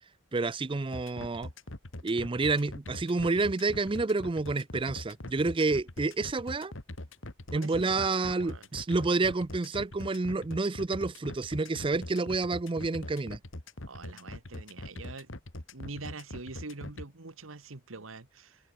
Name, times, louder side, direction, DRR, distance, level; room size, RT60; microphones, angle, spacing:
voice 1, 0.3-1.5 2.0-6.7 7.5-13.4, right 3 dB, 25° right, 0.5 m, -29 dB
sound 1, 0.9-17.0, left 1 dB, 70° left, 2.3 m, -42 dB
voice 2, 7.5-8.7 13.8-15.3 15.7-18.7, right 3 dB, 90° right, 1.6 m, -44 dB
head